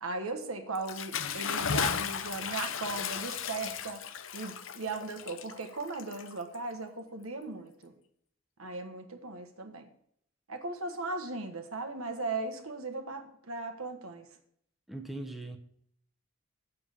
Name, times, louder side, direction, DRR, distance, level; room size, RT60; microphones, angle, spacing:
voice 1, 0.0-7.9 8.6-9.9 10.5-14.3, right 3 dB, 85° right, 6 dB, 1.3 m, -37 dB
Bathtub (filling or washing) / Splash splatter, 0.8-6.7, left 7 dB, 65° left, 0.7 m, -35 dB
voice 2, 14.9-15.6, right 2 dB, ahead, 4 dB, 0.8 m, -40 dB
7.2 x 7.2 x 6.6 m, 0.69 s
head